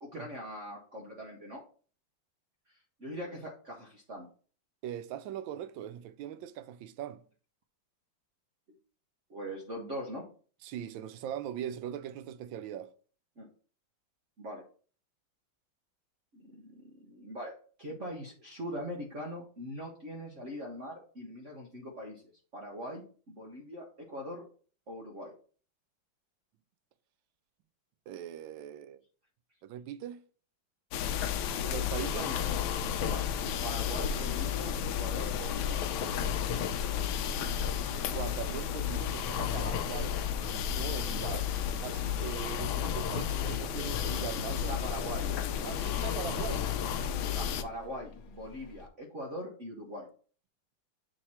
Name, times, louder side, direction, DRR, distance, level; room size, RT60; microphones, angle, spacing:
voice 1, 0.0-1.6 2.7-4.3 9.3-10.3 13.4-13.5 14.4-14.7 16.3-22.2 22.5-24.5 24.9-25.3 32.1-32.4 33.0-33.3 33.6-35.8 44.3-45.4 46.8-46.9 47.2-50.1, equal, 45° right, 1.2 m, -42 dB
voice 2, 4.8-7.2 10.6-12.9 28.1-29.0 29.6-30.2 31.7-32.3 38.1-40.2 40.5-41.5 41.8-44.8 45.6-46.8, right 10 dB, 80° right, 1.3 m, -40 dB
sound 1, 30.9-47.6, left 8 dB, 85° left, 1.4 m, -32 dB
Subway metro underground, 38.8-48.9, left 5 dB, 65° left, 1.1 m, -48 dB
7.7 x 3.0 x 4.2 m
omnidirectional pair, 2.1 m